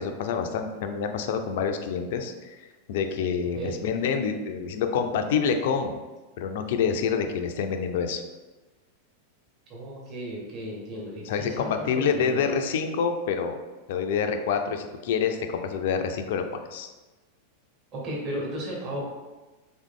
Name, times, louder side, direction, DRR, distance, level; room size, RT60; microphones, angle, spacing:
voice 1, 0.0-2.6 2.9-6.0 6.4-8.2 11.2-13.6 13.9-16.4 16.7-16.9, left 6 dB, 55° left, 6 dB, 0.4 m, -27 dB
voice 2, 9.7-11.7 12.0-12.5 17.9-19.0, right 1 dB, 40° right, -4 dB, 1.5 m, -34 dB
3.5 x 3.1 x 3.6 m, 1.2 s
figure-of-eight pair, 90°, 0 cm